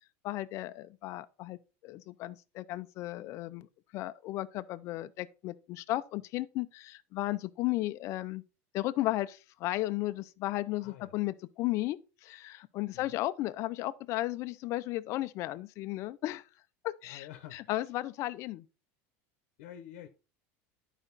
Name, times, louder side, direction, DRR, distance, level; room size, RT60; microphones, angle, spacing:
voice 1, 0.2-3.7 3.9-8.4 8.7-16.4 16.8-17.3 17.5-18.7, left 17 dB, 45° left, 0.5 m, -35 dB
voice 2, 10.8-11.1 12.9-13.2 17.0-17.9 19.6-20.1, left 11 dB, 75° left, 0.9 m, -49 dB
11.0 x 5.0 x 4.0 m
supercardioid pair, 155°, 7 cm